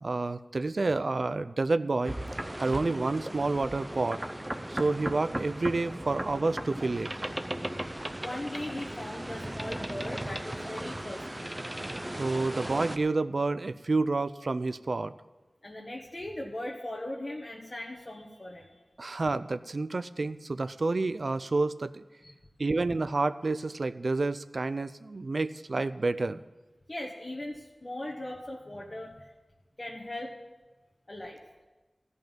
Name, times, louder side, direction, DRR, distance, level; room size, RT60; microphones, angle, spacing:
voice 1, 0.0-2.1 2.6-4.2 4.7-7.1 12.2-15.1 19.0-22.0 22.6-26.4, right 3 dB, 65° right, 14 dB, 0.4 m, -29 dB
sound 1, 2.0-13.0, right 1 dB, 25° right, 0.6 m, -37 dB
voice 2, 8.2-11.5 15.6-18.8 22.2-22.3 26.9-29.3 29.8-30.3 31.1-31.4, left 1 dB, 40° left, -2 dB, 1.4 m, -39 dB
14.0 x 5.6 x 9.0 m, 1.2 s
wide cardioid pair, 55°, 0 cm